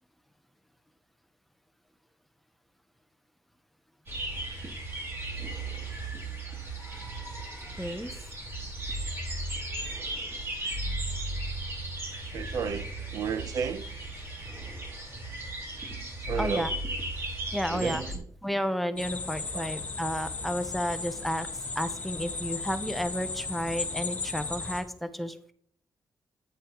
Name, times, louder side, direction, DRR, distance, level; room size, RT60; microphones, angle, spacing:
sound 1, 4.1-18.2, right 2 dB, 40° right, 3.0 m, -36 dB
voice 1, 7.8-8.1 16.4-16.7 17.5-18.0 18.4-21.5 21.8-25.5, equal, ahead, 0.6 m, -32 dB
voice 2, 12.3-13.8 16.2-16.8 17.7-18.3 19.5-19.7, right 6 dB, 65° right, 0.6 m, -33 dB
sound 2, 19.0-24.8, left 3 dB, 25° left, 1.6 m, -35 dB
10.0 x 9.1 x 2.9 m
wide cardioid pair, 160°, 7 cm